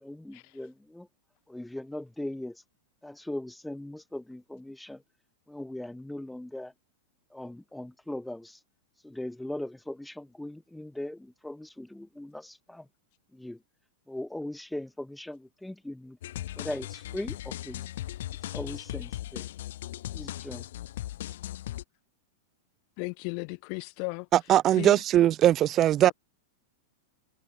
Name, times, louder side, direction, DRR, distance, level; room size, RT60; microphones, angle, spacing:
voice 1, 0.0-1.1 1.5-2.6 3.0-5.0 5.5-6.7 7.3-8.6 9.0-12.9 13.3-13.6 14.1-16.2 16.6-17.9 18.4-19.4 20.1-20.7, left 1 dB, 5° left, 2.8 m, -39 dB
sound 1, 16.2-21.8, left 13 dB, 70° left, 2.5 m, -38 dB
voice 2, 23.0-24.3 24.7-25.0, left 40 dB or more, 50° left, 8.0 m, -35 dB
voice 3, 24.3-26.1, right 12 dB, 30° right, 0.5 m, -21 dB
hypercardioid pair, 135°, 0 cm